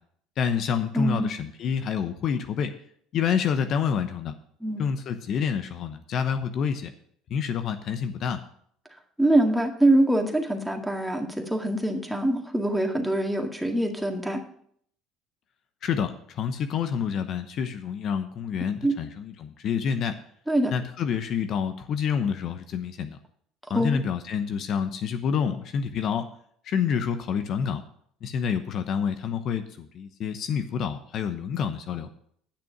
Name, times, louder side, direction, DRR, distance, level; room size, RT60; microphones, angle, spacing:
voice 1, 0.4-2.7 3.1-4.3 4.8-6.9 7.3-8.4 15.8-20.2 20.7-23.2 23.7-26.3 26.6-27.8 28.2-32.1, left 7 dB, 55° left, 9 dB, 0.8 m, -28 dB
voice 2, 0.9-1.3 4.6-4.8 9.2-14.4 18.8-19.0 20.5-20.7 23.7-24.0, right 1 dB, 5° right, 3 dB, 1.9 m, -24 dB
10.0 x 6.3 x 6.0 m, 0.64 s
supercardioid pair, 80°, 0 cm